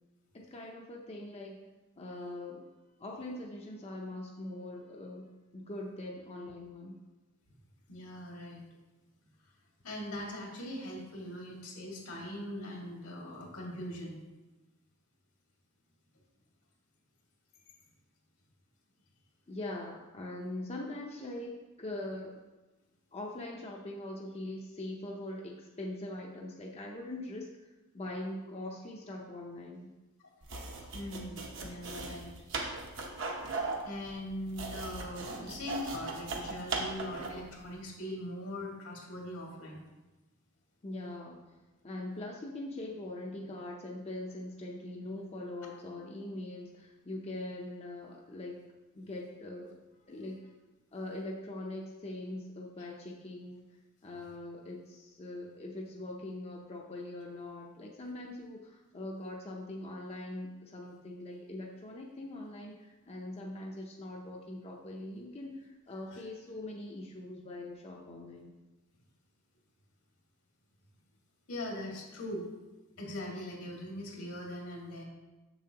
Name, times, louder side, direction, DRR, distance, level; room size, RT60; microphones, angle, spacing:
voice 1, 0.3-1.6 2.0-2.7 3.0-5.3 5.5-7.0 19.5-22.4 23.1-29.9 40.8-41.5 41.8-48.6 48.9-49.7 50.1-50.5 50.9-53.7 54.0-68.5, left 1 dB, 30° left, -1 dB, 0.5 m, -42 dB
voice 2, 7.9-8.6 9.8-14.1 30.2-30.3 30.7-32.3 33.8-39.8 52.8-52.9 66.0-66.2 71.5-72.5 73.0-75.0, left 1 dB, 80° left, -2 dB, 2.0 m, -41 dB
sound 1, 30.4-37.5, right 3 dB, 60° right, 0.9 m, -38 dB
7.0 x 6.9 x 2.9 m, 1.1 s
head